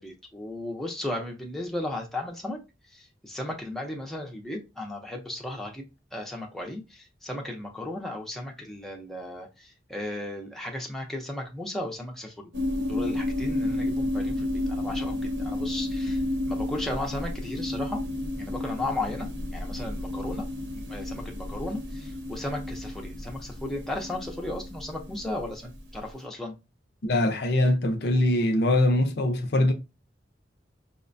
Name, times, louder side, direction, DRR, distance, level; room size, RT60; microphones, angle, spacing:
voice 1, 0.0-2.6 2.9-12.5 12.9-16.2 16.5-18.0 18.4-26.6, left 1 dB, ahead, 0.5 m, -35 dB
sound 1, 12.5-25.9, left 1 dB, 75° right, 0.8 m, -31 dB
voice 2, 27.0-29.7, left 1 dB, 60° left, 0.5 m, -22 dB
4.7 x 2.1 x 2.5 m
head